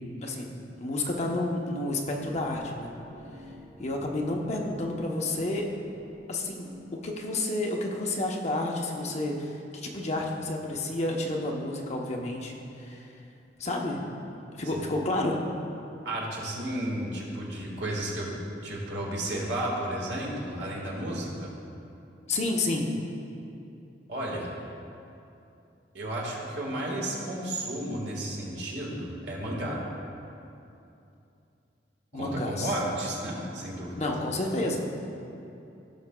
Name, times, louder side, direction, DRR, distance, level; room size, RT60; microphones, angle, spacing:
voice 1, 0.2-2.9 3.8-5.7 6.3-13.0 13.6-14.0 14.5-15.4 22.3-22.9 32.1-32.7 34.0-34.8, left 2 dB, 40° left, 0 dB, 0.7 m, -30 dB
sound 1, 2.2-7.5, equal, 5° right, 0.7 m, -50 dB
voice 2, 16.0-21.5 24.1-24.5 25.9-29.8 32.1-34.0, right 1 dB, 75° right, -3 dB, 1.6 m, -33 dB
15.5 x 5.8 x 2.2 m, 2.7 s
head